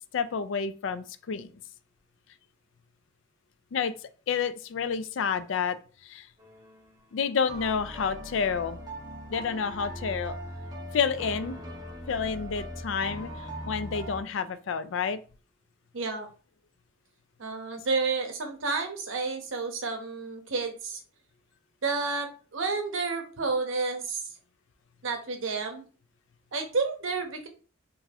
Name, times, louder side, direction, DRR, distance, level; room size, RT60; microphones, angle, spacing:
voice 1, 0.1-1.5 3.7-3.9 4.3-5.8 6.0-6.3 7.1-8.8 9.3-10.4 10.9-11.6 12.1-13.3 13.7-15.2, left 6 dB, 70° left, 11 dB, 0.4 m, -29 dB
sound 1, 6.4-6.9 7.5-14.2, right 1 dB, 20° right, 0.7 m, -40 dB
voice 2, 15.9-16.3 17.4-21.0 21.8-22.3 22.5-24.2 25.0-25.8 26.5-27.5, right 4 dB, 80° right, 4 dB, 0.8 m, -30 dB
3.8 x 2.6 x 2.7 m, 0.37 s
head